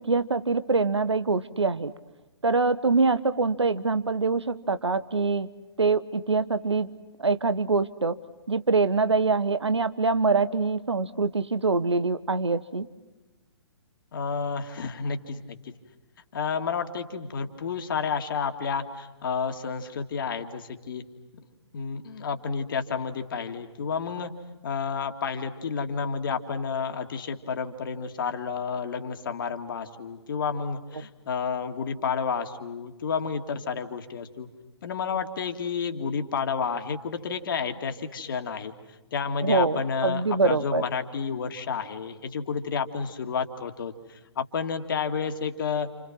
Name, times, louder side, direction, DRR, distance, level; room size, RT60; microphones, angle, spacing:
voice 1, 0.0-1.9 2.4-5.5 5.8-6.9 7.2-8.2 8.5-12.9 39.4-40.8, right 4 dB, 75° right, 13 dB, 1.2 m, -24 dB
voice 2, 14.1-15.7 16.3-21.0 21.7-24.3 24.6-34.5 34.8-38.7 39.1-45.9, left 6 dB, 50° left, 6 dB, 2.4 m, -30 dB
29.5 x 29.0 x 6.2 m, 1.1 s
figure-of-eight pair, 125°, 15 cm